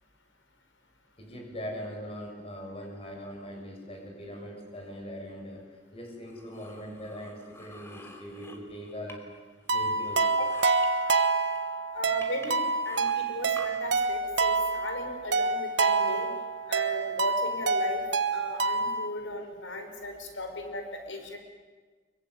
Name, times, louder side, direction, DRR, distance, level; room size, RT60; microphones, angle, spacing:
voice 1, 1.2-9.3 9.7-10.5, equal, 30° left, 2 dB, 7.3 m, -41 dB
sound 1, 6.3-9.4 9.7-10.9 11.5-11.6 12.2-13.7, left 1 dB, 15° left, 3.3 m, -48 dB
sound 2, 9.7-19.1, right 4 dB, 65° right, 1.4 m, -27 dB
voice 2, 11.9-16.3 16.7-18.0 18.3-21.4, left 1 dB, 90° left, 6 dB, 5.2 m, -37 dB
25.0 x 23.5 x 9.7 m, 1.4 s
head